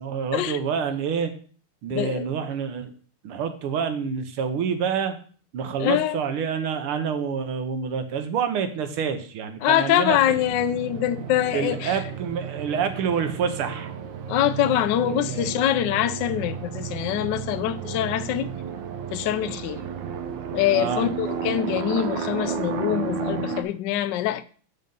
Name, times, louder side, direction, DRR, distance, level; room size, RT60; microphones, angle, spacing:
voice 1, 0.0-1.3 1.8-2.9 3.2-5.2 5.5-10.4 11.5-14.0 15.0-15.5 20.7-21.1, right 7 dB, 85° right, 1.9 m, -27 dB
voice 2, 1.9-2.3 5.8-6.2 9.6-12.0 14.3-18.5 19.1-19.8 20.5-24.5, left 12 dB, 75° left, 1.0 m, -24 dB
sound 1, 10.1-23.6, right 6 dB, 65° right, 1.4 m, -32 dB
7.7 x 5.2 x 5.3 m
omnidirectional pair, 2.4 m